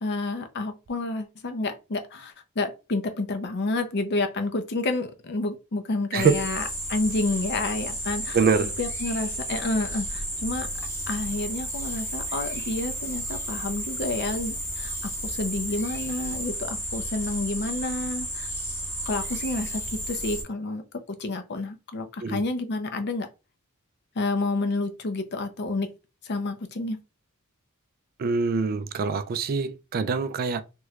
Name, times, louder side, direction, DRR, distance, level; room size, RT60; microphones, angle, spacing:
voice 1, 0.0-6.6 6.9-8.4 8.8-10.7 11.1-18.5 19.1-20.8 21.1-23.3 24.2-25.9 26.2-27.0, left 2 dB, 50° left, 0.6 m, -29 dB
voice 2, 6.1-6.5 8.3-8.8 22.2-22.4 28.2-30.6, right 5 dB, 40° right, 0.3 m, -24 dB
sound 1, 6.2-20.4, equal, 15° left, 1.0 m, -32 dB
3.1 x 3.0 x 2.3 m
head